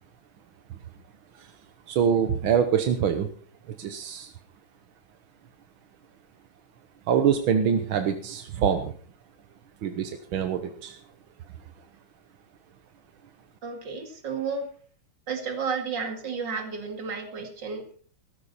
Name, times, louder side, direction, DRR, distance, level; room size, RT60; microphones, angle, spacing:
voice 1, 1.9-3.3 3.7-4.3 7.1-8.9 9.8-11.0, right 7 dB, 85° right, 8 dB, 1.9 m, -25 dB
voice 2, 13.6-14.7 15.3-18.0, right 5 dB, 60° right, 6 dB, 2.9 m, -32 dB
17.0 x 13.5 x 4.2 m, 0.41 s
omnidirectional pair, 2.2 m